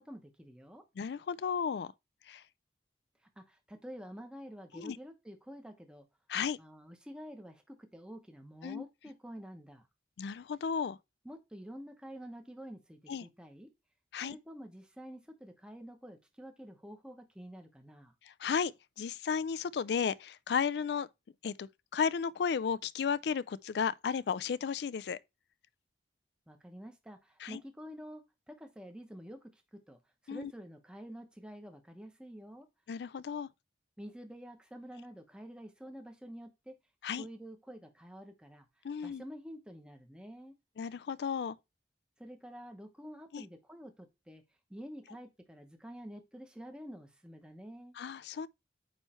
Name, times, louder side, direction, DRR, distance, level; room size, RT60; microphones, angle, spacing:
voice 1, 0.0-0.8 3.4-6.1 6.6-9.9 11.2-13.7 14.2-18.1 26.5-30.0 30.2-32.7 34.0-36.8 37.2-38.7 39.0-40.5 42.2-44.4 44.7-47.9, equal, 5° right, 0.9 m, -48 dB
voice 2, 1.0-1.9 2.3-2.4 4.7-5.0 6.3-6.6 8.6-8.8 10.2-11.0 13.1-13.3 14.1-14.4 18.4-18.7 19.0-21.1 21.4-25.2 27.4-27.6 30.3-30.5 32.9-33.5 37.0-37.2 38.8-39.2 40.8-41.6 43.3-43.4 48.0-48.5, left 6 dB, 70° left, 0.3 m, -34 dB
9.0 x 3.2 x 4.3 m
head